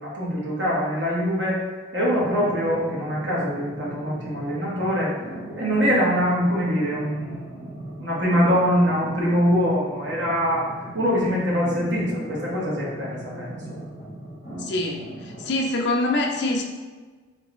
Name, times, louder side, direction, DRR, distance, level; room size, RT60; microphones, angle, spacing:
voice 1, 0.0-1.6 1.9-5.2 5.5-7.7 8.0-13.8, equal, 60° right, -5 dB, 1.2 m, -23 dB
sound 1, 2.1-15.5, right 1 dB, 25° right, 1.2 m, -39 dB
voice 2, 14.6-16.6, left 2 dB, 55° left, 2 dB, 0.5 m, -25 dB
3.9 x 3.4 x 3.0 m, 1.4 s
head